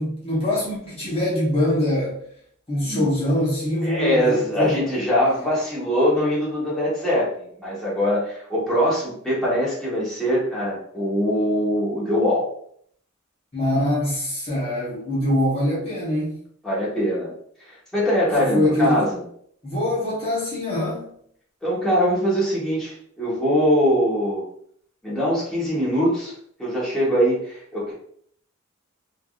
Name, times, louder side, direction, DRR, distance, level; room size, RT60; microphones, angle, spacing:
voice 1, 0.0-2.2 2.7-4.8 13.5-16.4 18.4-19.0 19.6-21.1, left 1 dB, 30° left, -7 dB, 0.9 m, -23 dB
voice 2, 3.8-12.5 16.6-17.3 17.7-19.2 21.6-24.4 25.0-26.3 26.6-27.9, equal, ahead, -8 dB, 1.0 m, -22 dB
3.4 x 2.4 x 2.3 m, 0.64 s
head